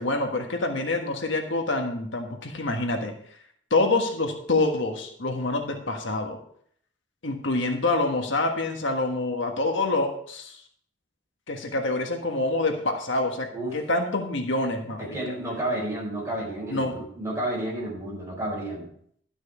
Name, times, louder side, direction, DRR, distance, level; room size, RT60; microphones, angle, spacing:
voice 1, 0.0-3.1 3.7-6.4 7.2-10.6 11.5-15.4 16.7-17.0, left 2 dB, 85° left, 3 dB, 1.5 m, -26 dB
voice 2, 15.0-18.9, right 1 dB, 15° right, -4 dB, 4.8 m, -31 dB
12.0 x 6.3 x 4.7 m, 0.64 s
head